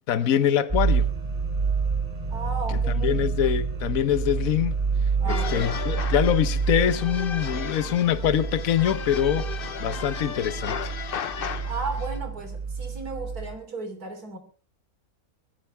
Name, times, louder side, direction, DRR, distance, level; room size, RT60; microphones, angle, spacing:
voice 1, 0.1-1.1 2.7-4.8 5.3-10.9, left 10 dB, 65° left, 1.3 m, -24 dB
sound 1, 0.7-13.5, right 5 dB, 25° right, 2.9 m, -28 dB
voice 2, 2.3-3.4 5.2-5.8 11.7-14.4, right 3 dB, 85° right, 3.8 m, -35 dB
sound 2, 5.3-12.2, left 7 dB, 45° left, 0.9 m, -35 dB
23.0 x 14.0 x 3.5 m
omnidirectional pair, 1.6 m